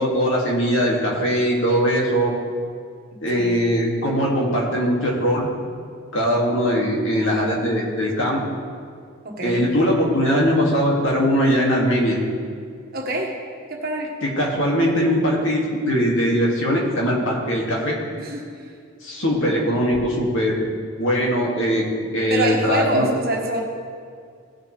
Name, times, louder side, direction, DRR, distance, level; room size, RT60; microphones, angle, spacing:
voice 1, 0.0-2.3 3.2-5.5 6.1-8.4 9.4-12.2 14.2-18.0 19.0-20.6 21.0-21.9 22.1-23.1, equal, 60° left, -3 dB, 2.2 m, -20 dB
voice 2, 9.2-9.6 12.9-13.4 13.7-14.1 18.2-18.5 22.3-23.6, right 1 dB, 45° right, 0 dB, 1.5 m, -25 dB
17.5 x 6.7 x 3.3 m, 2.2 s
head